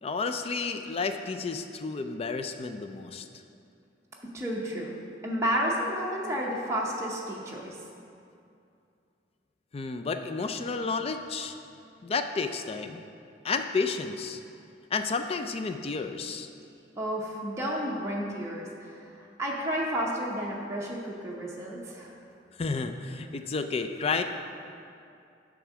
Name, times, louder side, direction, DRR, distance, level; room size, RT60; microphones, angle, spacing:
voice 1, 0.0-3.3 9.7-11.6 12.0-13.0 13.4-14.4 14.9-16.5 22.6-24.2, left 4 dB, 35° left, 8 dB, 0.4 m, -31 dB
voice 2, 4.2-4.9 5.2-7.7 17.0-22.1, equal, 15° right, -4 dB, 0.7 m, -31 dB
9.0 x 3.6 x 6.1 m, 2.5 s
head